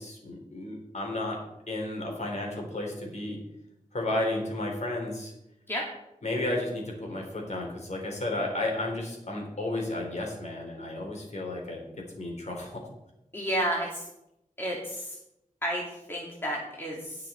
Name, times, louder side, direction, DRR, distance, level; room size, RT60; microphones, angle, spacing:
voice 1, 0.0-3.4 3.9-5.3 6.2-12.9, left 1 dB, 60° left, 0 dB, 3.5 m, -33 dB
voice 2, 13.3-14.1 14.6-15.2 15.6-17.2, equal, 15° left, -3 dB, 2.3 m, -31 dB
18.0 x 5.9 x 4.4 m, 0.87 s
wide cardioid pair, 80°, 13 cm